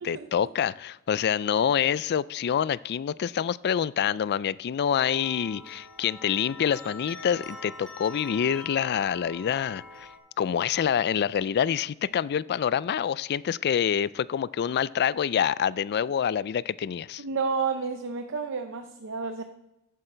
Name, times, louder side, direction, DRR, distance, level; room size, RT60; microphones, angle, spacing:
voice 1, 0.0-10.1 10.4-17.2, left 8 dB, 50° left, 19 dB, 0.3 m, -26 dB
sound 1, 4.9-10.2, left 2 dB, 5° left, 2.4 m, -44 dB
voice 2, 17.2-19.4, right 5 dB, 60° right, 7 dB, 0.7 m, -30 dB
14.5 x 8.4 x 4.4 m, 0.94 s
head